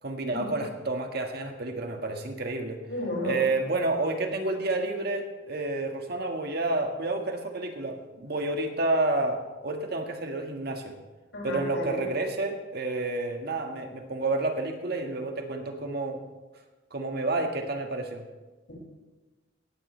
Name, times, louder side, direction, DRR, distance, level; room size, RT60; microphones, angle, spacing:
voice 1, 0.0-2.8 3.2-10.9 11.4-16.2 16.9-18.2, right 2 dB, 55° right, 3 dB, 1.8 m, -30 dB
voice 2, 2.9-3.3 11.3-12.0 18.7-18.8, left 1 dB, 75° left, -3 dB, 6.1 m, -33 dB
18.0 x 15.0 x 3.3 m, 1.2 s
head